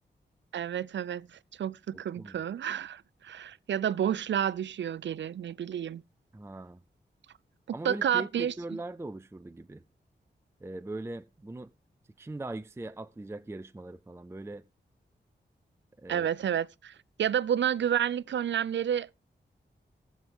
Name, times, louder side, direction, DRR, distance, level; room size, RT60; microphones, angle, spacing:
voice 1, 0.5-6.0 7.8-8.8 16.1-19.1, right 9 dB, 90° right, 0.5 m, -30 dB
voice 2, 1.9-2.4 6.3-6.8 7.7-9.8 10.6-11.7 12.2-14.6 16.0-16.3, right 2 dB, 15° right, 0.5 m, -40 dB
18.0 x 7.6 x 3.5 m
wide cardioid pair, 80°, 18 cm